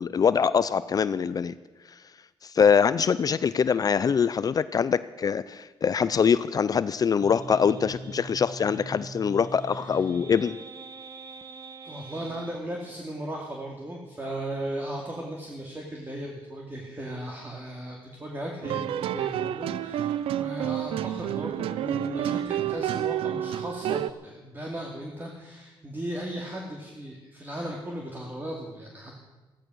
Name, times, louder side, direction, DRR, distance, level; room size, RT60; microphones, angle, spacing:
voice 1, 0.0-1.5 1.9-2.0 2.4-10.6, left 6 dB, 40° left, 15 dB, 0.5 m, -23 dB
sound 1, 7.2-12.6, right 3 dB, 40° right, 1.0 m, -42 dB
voice 2, 11.8-29.2, right 1 dB, 20° right, -1 dB, 2.5 m, -36 dB
sound 2, 18.6-24.1, right 11 dB, 85° right, 0.5 m, -29 dB
15.5 x 14.0 x 6.3 m, 1.2 s
cardioid pair, 100°, 9 cm